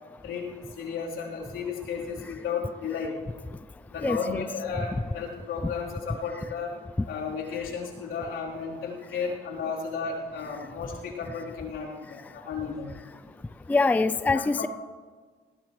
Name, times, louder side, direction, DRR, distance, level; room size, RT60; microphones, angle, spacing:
voice 1, 0.8-3.2 3.9-6.8 7.1-12.9 14.3-14.7, left 5 dB, 80° left, -4 dB, 3.8 m, -33 dB
voice 2, 4.0-4.4 13.7-14.7, left 3 dB, 10° left, 13 dB, 0.4 m, -24 dB
19.5 x 15.5 x 3.2 m, 1.5 s
cardioid pair, 90°, 20 cm